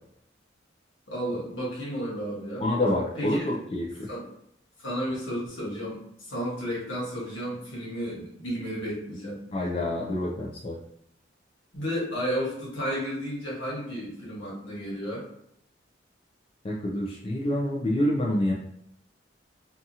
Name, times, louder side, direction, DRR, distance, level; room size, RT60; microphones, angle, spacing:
voice 1, 1.1-2.6 3.2-3.6 4.1-4.3 4.8-9.4 11.7-15.2, equal, 80° left, -5 dB, 1.2 m, -32 dB
voice 2, 2.6-4.1 9.5-10.8 16.6-18.5, left 1 dB, 30° left, -3 dB, 0.3 m, -27 dB
2.8 x 2.3 x 2.6 m, 0.73 s
head